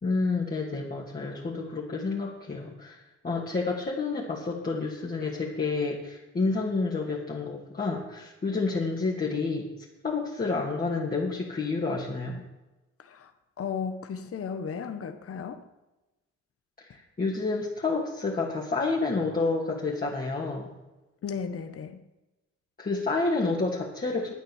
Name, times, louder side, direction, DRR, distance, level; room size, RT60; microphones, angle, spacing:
voice 1, 0.0-3.0 3.2-9.7 10.0-12.4 16.8-20.7 22.8-24.3, left 3 dB, 30° left, -5 dB, 2.6 m, -29 dB
voice 2, 13.0-13.3 13.6-15.6 21.2-22.0, left 6 dB, 50° left, 8 dB, 1.3 m, -35 dB
11.5 x 9.1 x 7.4 m, 1.0 s
cardioid pair, 90°, 30 cm